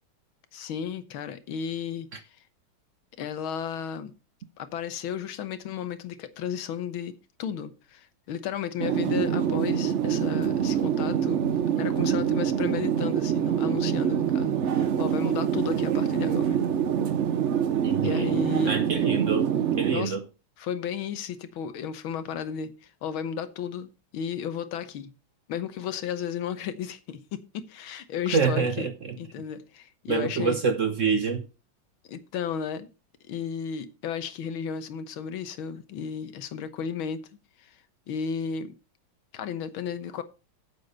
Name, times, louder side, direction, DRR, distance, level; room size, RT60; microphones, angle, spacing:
voice 1, 0.5-2.1 3.2-4.1 4.6-11.5 11.8-16.6 18.0-18.7 19.9-20.2 20.6-25.1 25.5-28.9 29.2-30.6 32.1-32.9 33.3-37.2 37.6-37.8 38.1-38.7 39.3-40.2, left 7 dB, 90° left, 1.9 m, -33 dB
sound 1, 8.8-20.0, right 8 dB, 70° right, 0.6 m, -25 dB
voice 2, 17.8-18.3 18.6-19.5 19.8-20.2 28.3-29.2 30.1-31.4, right 5 dB, 50° right, 1.0 m, -26 dB
8.9 x 7.8 x 5.4 m
omnidirectional pair, 2.2 m